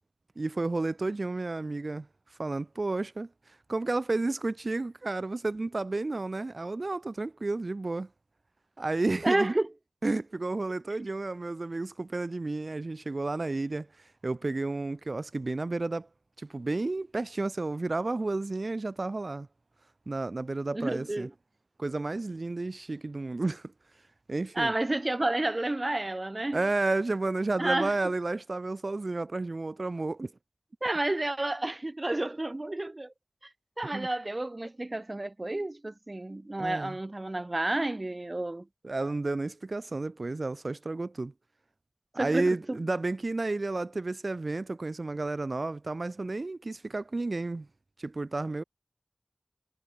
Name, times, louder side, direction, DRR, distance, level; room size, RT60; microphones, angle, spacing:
voice 1, 0.4-2.1 2.4-3.3 3.7-8.1 8.8-9.5 10.0-16.1 16.4-19.5 20.1-21.3 21.8-23.7 24.3-24.7 26.5-30.3 33.9-34.1 36.6-37.0 38.8-41.3 42.1-47.7 48.0-48.6, right 2 dB, 85° right, 3.8 m, -31 dB
voice 2, 9.2-9.7 20.7-21.3 24.5-26.6 27.6-27.9 30.8-33.1 33.8-38.6 42.2-42.8, right 2 dB, 50° right, 4.4 m, -30 dB
wide cardioid pair, 45°, 0 cm